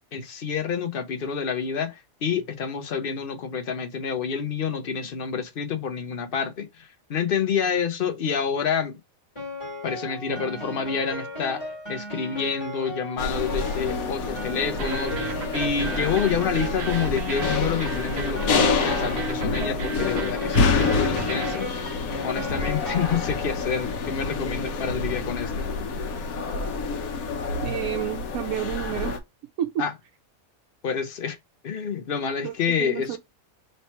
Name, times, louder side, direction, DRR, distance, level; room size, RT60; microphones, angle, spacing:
voice 1, 0.1-9.0 9.8-11.6 11.9-22.0 22.2-25.7 29.8-29.9 30.8-31.4 31.6-33.2, left 6 dB, 50° left, 0.7 m, -28 dB
Piano, 9.4-23.7, left 2 dB, 25° left, 1.6 m, -36 dB
sound 1, 13.2-29.2, left 4 dB, 80° left, 1.2 m, -28 dB
sound 2, 14.8-21.7, right 4 dB, 55° right, 1.0 m, -34 dB
voice 2, 27.5-29.1 29.6-29.9 32.4-32.5 32.8-33.2, right 11 dB, 85° right, 1.0 m, -29 dB
3.2 x 2.9 x 4.3 m
omnidirectional pair, 1.4 m